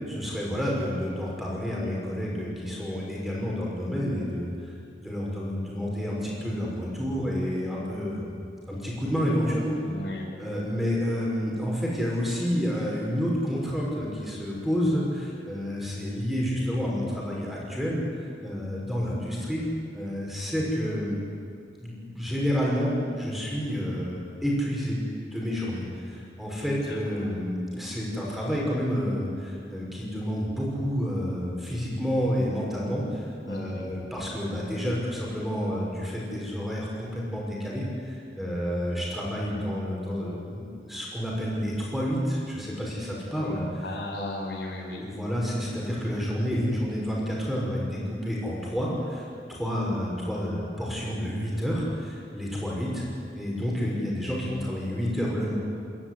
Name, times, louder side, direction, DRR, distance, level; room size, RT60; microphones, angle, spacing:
voice 1, 0.1-4.7 5.0-8.3 8.7-9.9 10.4-18.0 18.4-19.6 19.9-21.2 21.8-25.0 25.3-43.9 44.9-53.0 53.4-55.5, equal, ahead, -4 dB, 5.9 m, -29 dB
voice 2, 9.9-10.3 26.9-27.3 33.4-33.9 43.8-45.0, left 1 dB, 75° left, -2 dB, 5.3 m, -35 dB
26.5 x 13.5 x 10.0 m, 2.3 s
head